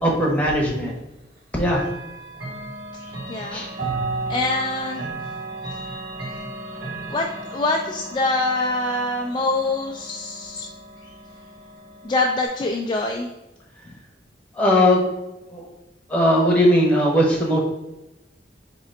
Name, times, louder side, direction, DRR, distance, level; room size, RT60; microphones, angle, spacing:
voice 1, 0.0-0.9 1.5-1.8 3.5-4.0 14.6-15.0 15.5-15.7 16.1-17.6, equal, 5° left, -3 dB, 1.0 m, -19 dB
Chime / Clock, 1.7-12.5, right 3 dB, 65° right, 1.3 m, -34 dB
voice 2, 3.0-3.6 4.3-5.1 6.2-6.4 7.1-7.2 7.5-10.7 11.0-11.1 12.0-13.3, left 2 dB, 25° left, 1 dB, 0.3 m, -25 dB
3.9 x 3.0 x 4.2 m, 0.99 s
head